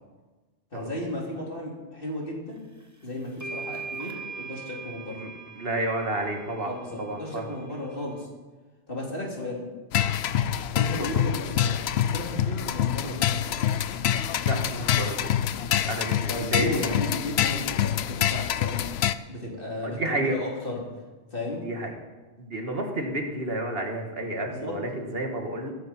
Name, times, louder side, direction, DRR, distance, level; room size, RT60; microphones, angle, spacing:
voice 1, 0.7-2.6 3.0-4.1 4.4-5.2 6.6-8.3 8.9-9.6 10.7-13.6 16.3-18.8 19.3-20.8 21.3-21.6 24.5-24.7, left 1 dB, 45° left, -2 dB, 3.3 m, -34 dB
sound 1, 2.8-2.9 3.4-8.2, right 4 dB, 15° right, 1.1 m, -41 dB
voice 2, 5.2-7.6 11.0-11.2 14.2-15.3 15.9-16.9 17.4-17.6 19.8-20.4 21.6-21.9 22.4-25.7, right 1 dB, 50° right, 3 dB, 2.1 m, -31 dB
sound 2, 9.9-19.1, left 10 dB, 65° left, 0.8 m, -26 dB
15.5 x 13.5 x 4.5 m, 1.3 s
omnidirectional pair, 1.3 m